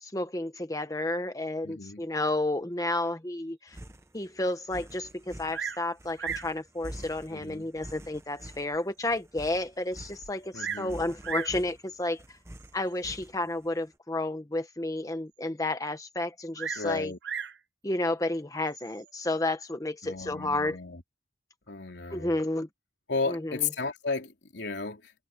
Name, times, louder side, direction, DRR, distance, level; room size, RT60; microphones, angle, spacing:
voice 1, 0.0-3.8 4.1-12.2 12.7-17.1 17.8-20.8 22.1-22.7 23.3-23.5, left 2 dB, 20° left, 1.2 m, -31 dB
voice 2, 1.6-2.1 7.3-7.7 10.5-11.0 16.7-17.2 20.0-21.0 21.7-22.3 23.1-25.1, left 4 dB, 80° left, 3.3 m, -34 dB
sound 1, 3.7-13.7, right 1 dB, 15° right, 1.0 m, -47 dB
Bird vocalization bird call bird song, 5.5-5.9 6.2-6.6 7.4-7.5 8.1-8.2 8.7-8.8 9.0-9.1 10.2-10.9 11.2-11.6 12.6-12.9 16.5-17.6 18.7-19.1, right 7 dB, 85° right, 0.9 m, -36 dB
head